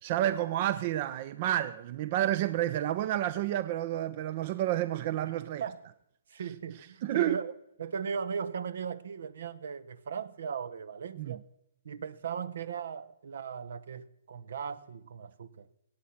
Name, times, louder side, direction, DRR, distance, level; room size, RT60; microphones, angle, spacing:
voice 1, 0.0-5.6 7.0-7.4 11.2-11.4, right 13 dB, 40° right, 0.4 m, -30 dB
voice 2, 5.2-5.9 6.3-7.5 7.8-11.4 11.8-15.7, right 6 dB, 70° right, 0.7 m, -38 dB
17.0 x 8.6 x 5.8 m
hypercardioid pair, 150°, 0 cm